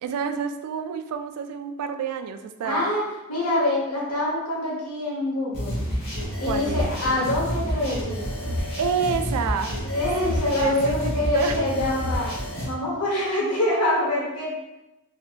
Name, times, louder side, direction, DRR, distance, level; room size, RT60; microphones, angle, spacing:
voice 1, 0.0-2.9 6.4-6.9 8.8-9.8 10.5-11.6, right 6 dB, 90° right, 11 dB, 0.3 m, -29 dB
voice 2, 2.6-3.0 3.3-5.8 6.4-8.2 9.8-12.3 12.6-14.5, left 1 dB, 85° left, -5 dB, 1.2 m, -25 dB
sound 1, 5.5-12.6, equal, 45° left, 1.2 m, -29 dB
3.3 x 2.8 x 2.4 m, 0.94 s
head